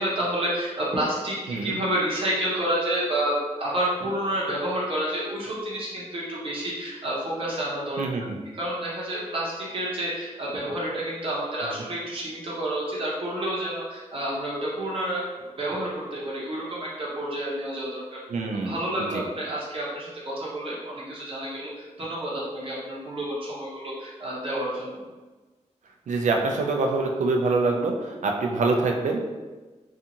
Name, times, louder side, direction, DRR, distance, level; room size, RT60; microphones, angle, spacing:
voice 1, 0.0-8.0 8.5-18.2 18.5-25.0, right 1 dB, 45° right, -6 dB, 0.7 m, -29 dB
voice 2, 8.0-8.4 18.3-18.8 19.1-19.2 26.1-29.3, right 3 dB, 85° right, 2 dB, 0.4 m, -25 dB
2.6 x 2.4 x 2.8 m, 1.2 s
wide cardioid pair, 155°, 12 cm